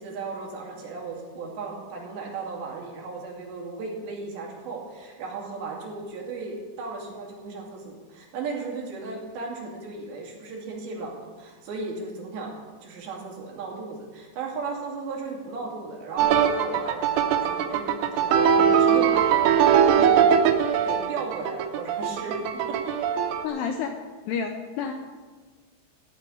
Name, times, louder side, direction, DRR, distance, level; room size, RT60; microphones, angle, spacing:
voice 1, 0.0-20.3 20.8-22.4 22.7-23.3, right 4 dB, 65° right, -2 dB, 4.5 m, -36 dB
sound 1, 16.2-23.4, right 8 dB, 85° right, 3.2 m, -21 dB
voice 2, 23.4-24.0 24.3-24.9, left 6 dB, 80° left, 5 dB, 2.5 m, -29 dB
15.0 x 5.6 x 9.6 m, 1.4 s
omnidirectional pair, 5.5 m